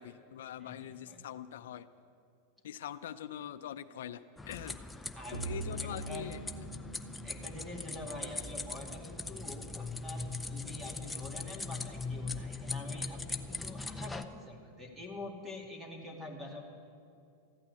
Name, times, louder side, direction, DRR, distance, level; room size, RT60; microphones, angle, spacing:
voice 1, 0.0-1.9 2.6-4.8 5.3-6.4, left 10 dB, 80° left, 11 dB, 0.5 m, -43 dB
voice 2, 0.6-1.2 5.2-5.5 5.8-6.3 7.2-16.6, left 2 dB, 10° right, 1 dB, 2.3 m, -46 dB
sound 1, 4.4-14.2, left 3 dB, 5° left, 0.5 m, -40 dB
sound 2, 5.3-8.6, right 2 dB, 90° right, 1.9 m, -43 dB
14.0 x 8.9 x 9.6 m, 2.4 s
supercardioid pair, 135°, 0 cm